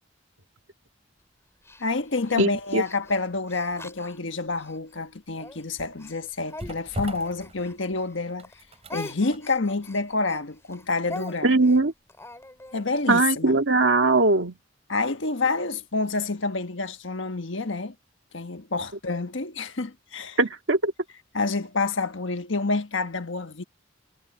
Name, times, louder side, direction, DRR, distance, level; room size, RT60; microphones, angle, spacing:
Speech, 1.6-4.8 5.3-8.2 8.4-12.8, left 2 dB, 15° left, 4.4 m, -43 dB
voice 1, 1.8-8.5 8.9-11.6 12.7-13.6 14.9-17.9 18.3-20.4 21.3-23.6, left 3 dB, 75° left, 1.4 m, -28 dB
voice 2, 2.4-2.8 11.4-11.9 13.1-14.5 20.4-20.9, right 2 dB, 75° right, 2.0 m, -20 dB
sound 1, 5.3-13.3 13.6-13.8, right 1 dB, 35° right, 3.9 m, -43 dB
head